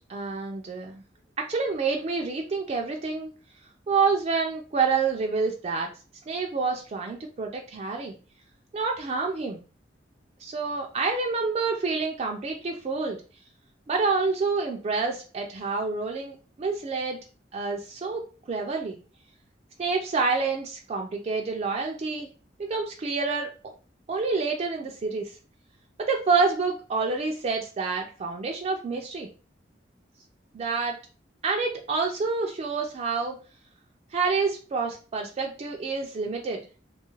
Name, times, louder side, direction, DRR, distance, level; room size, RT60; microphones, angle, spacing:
voice 1, 0.1-1.0 1.4-3.3 3.9-5.9 6.3-8.1 8.7-9.6 10.4-13.2 13.9-17.2 17.5-19.0 19.8-22.3 22.7-23.5 24.1-25.4 26.0-29.3 30.5-31.0 31.4-33.4 34.1-36.6, right 4 dB, 40° right, 2 dB, 0.3 m, -28 dB
2.5 x 2.3 x 3.0 m, 0.36 s
head